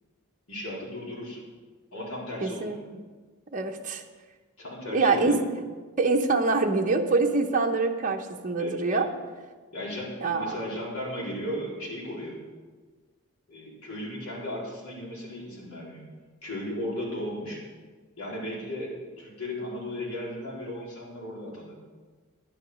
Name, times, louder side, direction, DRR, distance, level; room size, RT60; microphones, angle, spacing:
voice 1, 0.5-1.4 1.9-2.8 4.6-5.4 8.6-9.1 9.7-12.4 13.5-16.1 16.4-17.6 18.2-21.8, left 1 dB, 85° left, -4 dB, 4.1 m, -35 dB
voice 2, 2.4-2.8 3.5-4.0 4.9-5.4 6.0-9.1 10.2-10.5, right 3 dB, 35° right, 2 dB, 0.9 m, -25 dB
10.5 x 10.0 x 6.2 m, 1.4 s
head